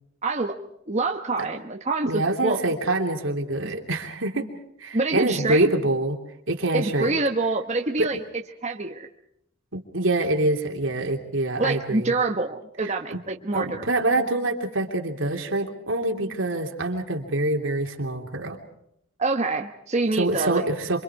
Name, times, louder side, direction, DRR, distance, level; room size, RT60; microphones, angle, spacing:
voice 1, 0.2-0.5 0.9-2.6 3.6-3.7 4.9-5.7 6.7-8.2 8.6-9.1 11.6-13.8 19.2-20.7, right 3 dB, 35° right, 2 dB, 1.2 m, -26 dB
voice 2, 2.0-4.5 4.8-6.2 6.5-7.2 8.0-8.1 9.7-12.1 12.8-13.2 13.5-18.6 20.2-21.0, right 2 dB, 75° right, 2 dB, 3.1 m, -25 dB
27.5 x 25.0 x 4.8 m, 0.78 s
head